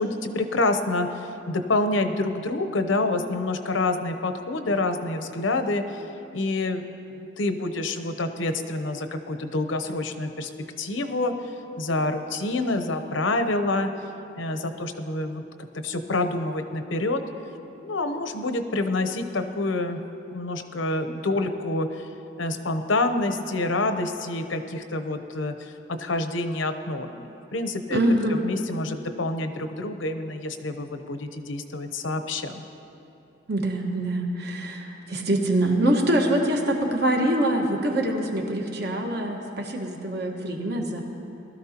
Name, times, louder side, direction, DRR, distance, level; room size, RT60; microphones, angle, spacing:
voice 1, 0.0-6.0 6.3-6.9 7.2-10.5 10.8-11.3 11.8-13.9 14.4-15.4 15.7-17.2 17.8-20.0 20.3-22.1 22.4-25.7 26.0-28.0 28.3-32.6, left 2 dB, 80° left, 7 dB, 0.8 m, -27 dB
voice 2, 27.9-28.4 33.5-41.0, right 1 dB, 55° right, 1 dB, 1.4 m, -24 dB
20.0 x 13.0 x 2.9 m, 2.9 s
head